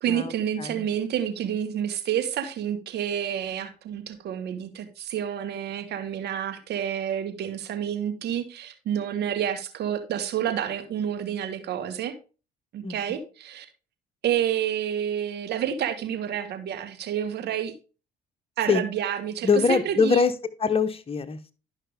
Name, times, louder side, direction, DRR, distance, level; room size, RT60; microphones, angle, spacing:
voice 1, 0.0-12.1 12.7-13.6 14.2-17.7 18.6-20.2, right 9 dB, 65° right, 1.6 m, -29 dB
voice 2, 19.4-20.3 20.6-21.5, left 5 dB, 30° left, 1.1 m, -23 dB
11.0 x 5.7 x 3.5 m
hypercardioid pair, 60°, 18 cm